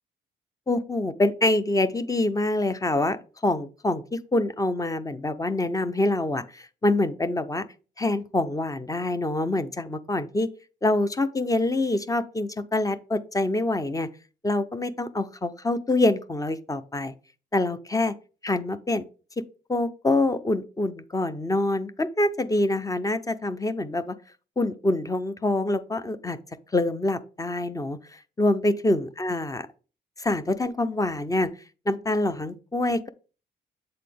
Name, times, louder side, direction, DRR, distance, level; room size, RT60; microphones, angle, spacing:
voice 1, 0.7-3.2 3.4-7.6 8.0-10.5 10.8-14.1 14.4-17.1 17.5-18.1 18.4-19.0 19.7-24.2 24.6-26.4 26.7-29.7 30.2-31.5 31.9-33.1, left 2 dB, 15° left, 0.6 m, -25 dB
7.6 x 4.0 x 3.5 m
cardioid pair, 90°, 20 cm